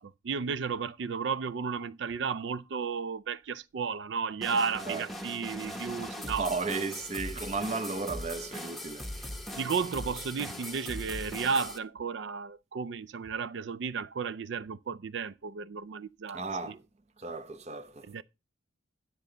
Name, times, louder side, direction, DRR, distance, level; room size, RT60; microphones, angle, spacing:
voice 1, 0.0-6.5 9.5-16.4 16.7-16.8 18.1-18.2, right 5 dB, 70° right, 0.4 m, -33 dB
sound 1, 4.4-11.8, left 1 dB, ahead, 0.9 m, -40 dB
voice 2, 6.2-9.3 16.3-16.8 17.2-18.1, right 4 dB, 35° right, 0.7 m, -35 dB
10.5 x 6.6 x 3.9 m
head